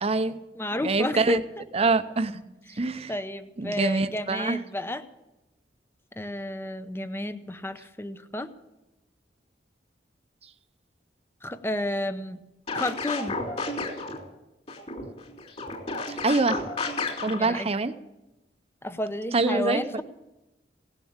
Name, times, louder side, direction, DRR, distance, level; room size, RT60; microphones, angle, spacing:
voice 1, 0.0-0.4 0.8-1.4 1.7-2.4 2.8-3.1 3.6-4.6 16.1-16.6 17.2-18.0 19.3-19.8, right 3 dB, 35° right, 11 dB, 0.7 m, -25 dB
voice 2, 0.6-1.6 3.1-5.0 6.2-8.5 11.4-12.4 12.7-13.4 17.3-17.7 18.8-20.0, left 1 dB, 15° left, 11 dB, 0.7 m, -32 dB
sound 1, 12.7-14.2 14.7-17.4, left 3 dB, 40° left, 3.1 m, -32 dB
17.5 x 7.2 x 8.8 m, 0.98 s
head